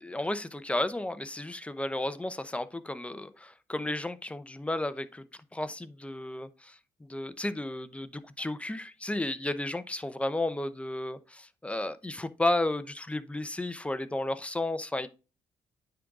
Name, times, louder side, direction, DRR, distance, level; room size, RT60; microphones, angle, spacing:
voice 1, 0.0-5.2 5.5-6.7 7.1-15.1, left 1 dB, 10° left, 0.7 m, -33 dB
9.2 x 3.9 x 3.7 m
cardioid pair, 80°, 12 cm